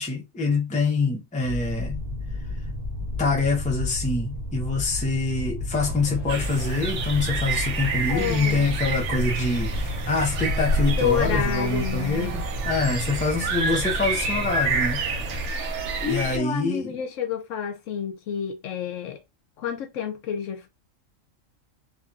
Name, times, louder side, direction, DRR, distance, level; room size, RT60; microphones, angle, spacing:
voice 1, 0.0-2.0 3.2-15.3 15.6-15.7 16.0-17.0, left 3 dB, 10° left, 0.5 m, -25 dB
sound 1, 1.4-11.4, left 2 dB, 40° right, 0.9 m, -32 dB
sound 2, 5.8-15.5, right 2 dB, 25° left, 1.3 m, -37 dB
sound 3, 6.3-16.4, right 3 dB, 70° right, 0.9 m, -28 dB
voice 2, 8.1-8.7 11.0-12.3 16.0-19.2 19.6-20.7, left 8 dB, 75° left, 1.0 m, -29 dB
2.8 x 2.6 x 2.3 m
omnidirectional pair, 1.3 m